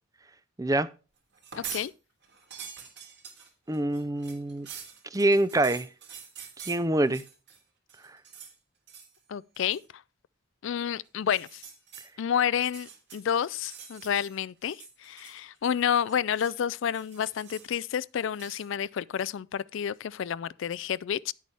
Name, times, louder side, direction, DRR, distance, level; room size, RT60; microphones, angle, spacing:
voice 1, 0.6-0.9 3.7-4.7 5.1-5.9 6.6-7.2, right 1 dB, 15° right, 0.5 m, -25 dB
sound 1, 1.3-1.9 2.2-7.6 7.9-8.5 8.9-9.2 9.5-9.9 11.2-12.1 12.6-14.4 14.6-15.6 15.8-16.6 16.9-17.8 18.4-18.7, right 7 dB, 50° right, 3.2 m, -45 dB
voice 2, 1.6-1.9 9.3-9.8 10.6-11.6 12.2-21.3, left 8 dB, 60° left, 0.3 m, -30 dB
10.5 x 8.3 x 3.4 m
head